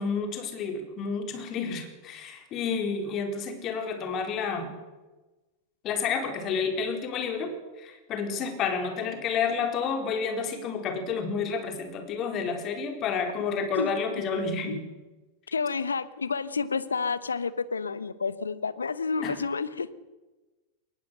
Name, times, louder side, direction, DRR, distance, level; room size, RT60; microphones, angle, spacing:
voice 1, 0.0-4.7 5.8-14.8 19.2-19.4, left 5 dB, 35° left, 5 dB, 4.3 m, -30 dB
voice 2, 15.5-19.9, left 5 dB, 75° left, 16 dB, 1.2 m, -30 dB
21.5 x 20.0 x 6.5 m, 1.2 s
figure-of-eight pair, 90°, 0 cm